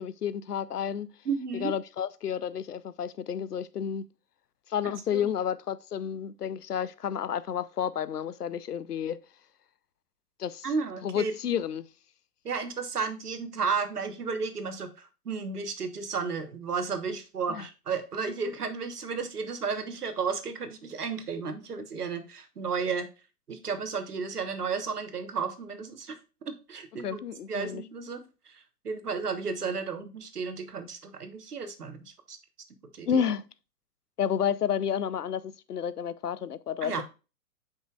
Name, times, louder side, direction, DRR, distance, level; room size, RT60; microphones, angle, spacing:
voice 1, 0.0-1.1 1.5-4.0 4.7-9.2 10.4-10.7 11.0-11.9 17.5-17.7 27.0-27.8 33.1-33.4 34.2-37.0, left 8 dB, 75° left, 0.7 m, -31 dB
voice 2, 1.2-1.7 4.8-5.3 10.6-11.3 12.4-23.1 23.5-27.2 27.5-32.0 32.3-32.4 32.9-33.2 36.8-37.0, right 5 dB, 70° right, 1.3 m, -33 dB
8.0 x 5.5 x 2.4 m
figure-of-eight pair, 115°, 47 cm